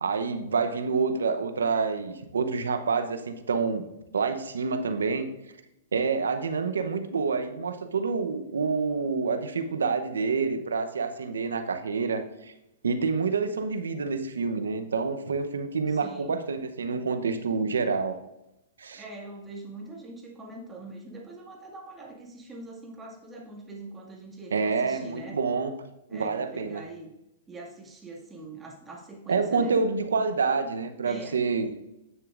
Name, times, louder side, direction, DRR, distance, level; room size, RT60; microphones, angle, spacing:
voice 1, 0.0-3.9 4.1-5.3 5.9-12.5 12.8-18.2 18.8-19.0 24.5-25.7 26.1-26.8 29.3-31.7, right 4 dB, 90° right, 9 dB, 0.8 m, -27 dB
voice 2, 15.9-16.5 18.9-25.4 26.1-27.1 27.5-29.8 31.0-31.4, right 2 dB, 15° right, -2 dB, 2.1 m, -43 dB
10.5 x 6.7 x 2.5 m, 0.88 s
hypercardioid pair, 125°, 0 cm